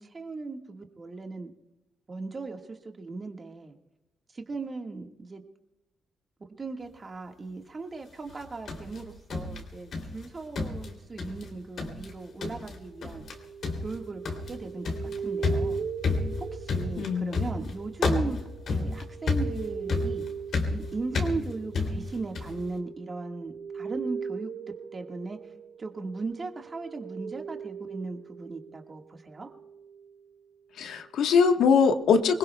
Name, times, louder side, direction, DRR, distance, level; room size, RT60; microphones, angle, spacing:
voice 1, 0.0-1.5 2.1-3.8 4.3-5.4 6.6-13.2 13.8-14.2 14.5-15.9 16.6-18.4 18.7-20.3 20.7-24.5 24.9-25.4 25.8-29.5, right 3 dB, 25° right, 3 dB, 1.6 m, -37 dB
sound 1, 8.3-10.3 10.6-11.5 11.8-12.1 12.4-12.8 13.0-13.4 13.6-22.6, left 3 dB, 55° left, 2.9 m, -31 dB
sound 2, 12.7-28.9 29.3-30.1, right 6 dB, 65° right, 1.9 m, -39 dB
voice 2, 17.0-17.3 30.8-32.4, left 5 dB, 75° left, 6 dB, 1.2 m, -22 dB
25.5 x 21.0 x 2.3 m, 0.91 s
cardioid pair, 140°, 0 cm